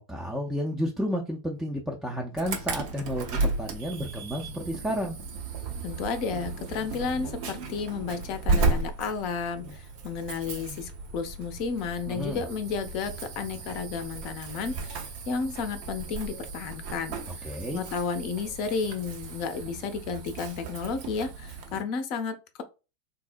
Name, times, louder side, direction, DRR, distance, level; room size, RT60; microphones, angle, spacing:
voice 1, 0.0-5.2 12.1-12.4 17.4-17.8, equal, 5° right, -1 dB, 0.5 m, -31 dB
Insect / Alarm, 2.4-21.8, right 3 dB, 45° right, 0.6 m, -34 dB
voice 2, 5.8-22.6, left 5 dB, 40° left, 9 dB, 0.5 m, -32 dB
3.8 x 2.0 x 2.5 m, 0.30 s
figure-of-eight pair, 90°, 0 cm